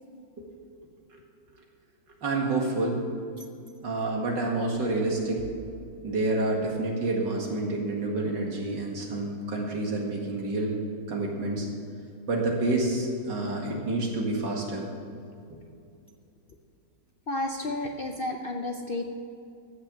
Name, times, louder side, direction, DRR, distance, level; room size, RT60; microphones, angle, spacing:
voice 1, 2.2-3.0 3.8-5.4 6.0-10.8 11.1-11.7 12.3-14.9, right 2 dB, 90° right, -1 dB, 2.6 m, -28 dB
voice 2, 17.3-19.1, left 2 dB, 65° left, 3 dB, 0.5 m, -31 dB
14.5 x 6.6 x 7.5 m, 2.4 s
omnidirectional pair, 1.8 m